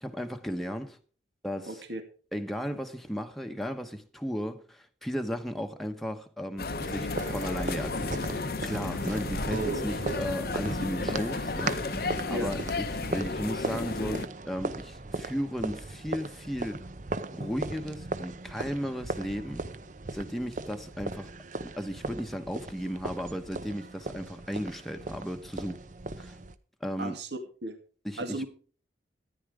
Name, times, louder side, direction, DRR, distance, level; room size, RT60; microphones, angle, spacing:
voice 1, 0.0-1.0 1.4-1.8 2.3-16.8 17.3-19.6 20.1-21.3 21.8-25.8 26.2-26.4 26.8-27.2 28.0-28.4, equal, ahead, 1.1 m, -35 dB
voice 2, 1.7-2.0 9.5-10.2 12.3-12.5 27.0-27.8 28.2-28.5, right 2 dB, 70° right, 2.2 m, -35 dB
sound 1, 6.6-14.3, left 3 dB, 55° left, 0.8 m, -33 dB
sound 2, 6.8-26.5, right 2 dB, 45° right, 0.8 m, -37 dB
14.0 x 10.0 x 4.9 m
head